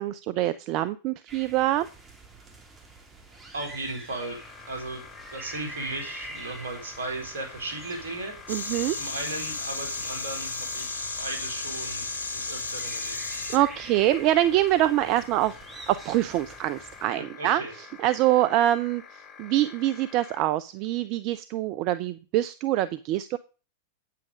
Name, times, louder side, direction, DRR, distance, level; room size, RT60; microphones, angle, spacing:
voice 1, 0.0-1.9 8.5-9.0 13.5-17.6 18.0-23.4, right 14 dB, 45° right, 14 dB, 0.6 m, -25 dB
sound 1, 1.3-17.0, right 2 dB, 20° right, 2.5 m, -46 dB
voice 2, 3.5-4.4 4.7-5.1 5.3-13.2 17.1-17.7, right 2 dB, 70° right, 3 dB, 3.9 m, -36 dB
sound 2, 4.2-20.4, left 6 dB, 30° left, 2.4 m, -48 dB
sound 3, 8.5-13.6, left 3 dB, 80° left, 1.4 m, -33 dB
8.9 x 8.4 x 5.3 m, 0.35 s
figure-of-eight pair, 95°, 0 cm